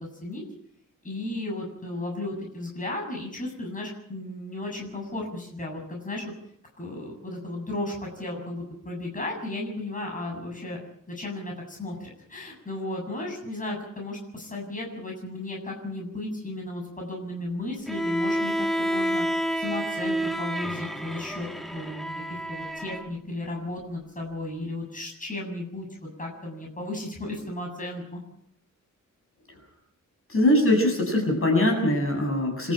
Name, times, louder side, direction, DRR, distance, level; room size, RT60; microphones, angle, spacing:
voice 1, 1.0-6.3 6.8-10.8 11.1-19.2 19.6-28.2, left 2 dB, 25° left, 0 dB, 7.5 m, -34 dB
Bowed string instrument, 17.9-23.1, equal, ahead, 1.3 m, -29 dB
voice 2, 30.3-32.7, left 1 dB, 45° left, 3 dB, 7.4 m, -22 dB
27.5 x 13.5 x 9.0 m, 0.71 s
wide cardioid pair, 165°, 31 cm